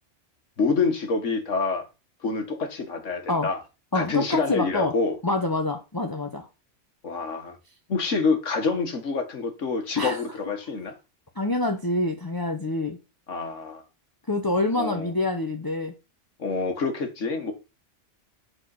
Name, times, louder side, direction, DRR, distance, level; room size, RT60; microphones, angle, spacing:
voice 1, 0.6-1.8 2.2-3.6 3.9-5.2 7.0-7.6 7.9-10.9 13.3-13.8 14.8-15.1 16.4-17.5, left 4 dB, 80° left, 1.8 m, -27 dB
voice 2, 3.9-4.9 5.2-6.5 10.0-10.2 11.3-13.0 14.3-15.9, left 2 dB, 20° left, 0.9 m, -26 dB
8.5 x 6.5 x 4.0 m
omnidirectional pair, 1.3 m